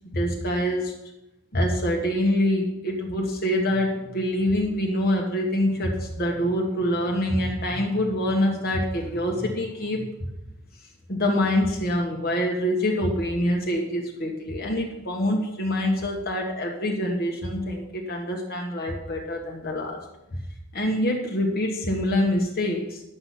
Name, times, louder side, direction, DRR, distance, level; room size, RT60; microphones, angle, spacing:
voice 1, 0.1-1.0 1.5-10.1 11.1-20.0 20.3-20.4 20.7-23.0, left 1 dB, 45° left, 0 dB, 1.4 m, -25 dB
9.9 x 7.9 x 5.8 m, 0.88 s
head